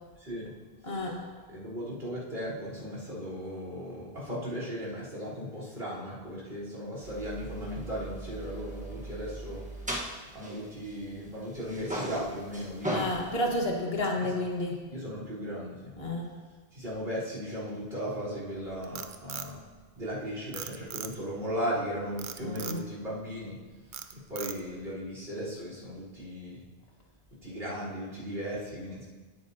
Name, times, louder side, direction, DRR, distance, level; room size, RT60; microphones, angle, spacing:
voice 1, 0.2-0.5 1.5-9.6 9.9-13.1 14.2-14.3 14.9-16.0 16.7-19.6 19.9-23.6 24.1-26.6 27.4-29.1, equal, 75° right, -6 dB, 4.3 m, -37 dB
voice 2, 0.8-1.3 12.9-14.9 16.0-16.3 22.4-22.9, left 1 dB, 75° left, 0 dB, 1.9 m, -31 dB
sound 1, 7.0-11.3 11.5-13.6, right 1 dB, 10° right, 1.3 m, -38 dB
Frog, 18.6-20.2 20.5-21.4 22.2-22.8 23.3-23.6 23.9-24.8, right 7 dB, 55° right, 0.7 m, -40 dB
17.0 x 8.8 x 2.8 m, 1.4 s
omnidirectional pair, 1.0 m